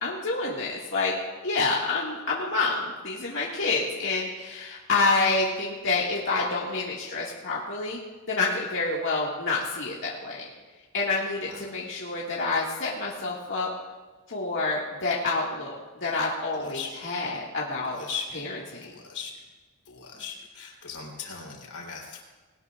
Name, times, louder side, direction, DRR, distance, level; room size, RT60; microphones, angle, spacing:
voice 1, 0.0-1.1 1.4-8.0 8.3-10.4 10.9-13.7 14.3-15.7 16.0-18.0 18.3-18.9, left 3 dB, 60° left, -5 dB, 1.9 m, -28 dB
voice 2, 16.5-16.9 17.8-18.5 18.8-19.3 19.9-22.2, left 6 dB, 90° left, -1 dB, 3.4 m, -38 dB
20.5 x 18.5 x 2.4 m, 1.3 s
head